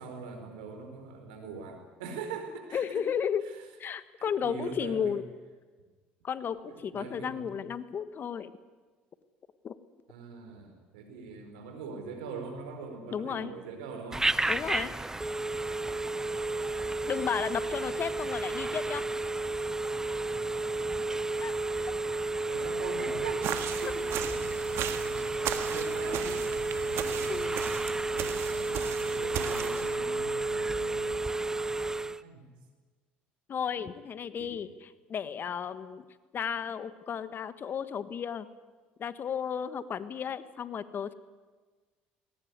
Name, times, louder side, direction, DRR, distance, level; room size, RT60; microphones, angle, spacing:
voice 1, 0.0-3.0 4.2-5.2 6.7-7.5 10.1-14.3 22.5-23.4 23.8-23.9 25.7-26.5 26.9-27.4 28.1-28.9 29.1-31.2 32.2-32.4 34.4-34.5, right 4 dB, 85° right, 6 dB, 4.5 m, -42 dB
voice 2, 2.7-3.4 3.8-5.2 6.2-8.5 9.6-9.7 13.1-13.5 14.5-14.9 17.1-19.1 21.4-21.5 27.3-27.6 33.5-36.1 36.3-38.5 39.0-41.1, left 7 dB, 45° left, 13 dB, 1.4 m, -33 dB
Telephone, 14.1-32.2, right 2 dB, 10° right, 0.9 m, -32 dB
sound 1, 23.4-30.0, right 10 dB, 65° right, 1.8 m, -37 dB
20.0 x 18.5 x 9.6 m, 1.4 s
hypercardioid pair, 70°, 5 cm